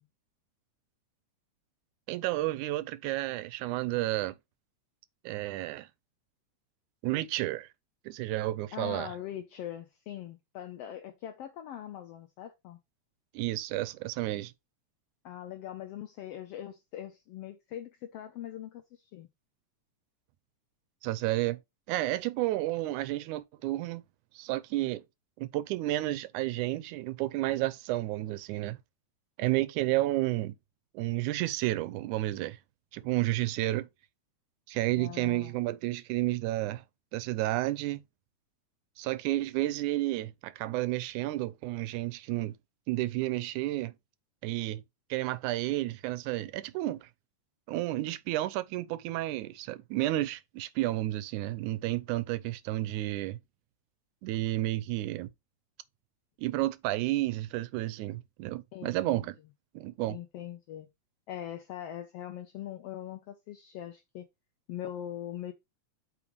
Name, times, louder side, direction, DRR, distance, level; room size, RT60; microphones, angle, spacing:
voice 1, 2.1-4.4 5.2-5.9 7.0-7.7 8.1-9.1 13.3-14.5 21.0-21.6 21.9-24.0 24.4-25.0 25.4-28.8 29.4-30.5 30.9-32.6 32.9-33.9 34.7-36.8 37.1-38.0 39.0-42.6 42.9-43.9 44.4-44.8 45.1-47.1 47.7-53.4 54.2-55.3 56.4-59.4 59.8-60.2, right 16 dB, 85° right, 2.0 m, -31 dB
voice 2, 8.7-12.8 15.2-19.3 34.9-35.6 58.7-59.3 60.1-60.9 61.3-64.2 64.7-65.5, left 11 dB, 80° left, 1.4 m, -41 dB
8.5 x 4.8 x 3.1 m
omnidirectional pair, 3.5 m